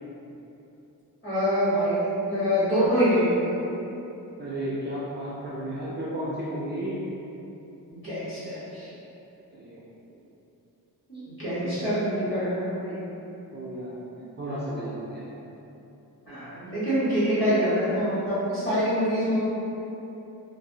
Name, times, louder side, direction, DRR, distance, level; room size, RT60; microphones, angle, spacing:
voice 1, 1.2-3.5 7.9-8.9 11.1-13.1 16.3-19.4, equal, 30° left, -12 dB, 1.3 m, -25 dB
voice 2, 4.4-7.0 9.5-9.8 11.6-11.9 13.5-15.3, right 1 dB, 30° right, -9 dB, 0.4 m, -33 dB
2.6 x 2.6 x 2.7 m, 2.9 s
wide cardioid pair, 130°, 39 cm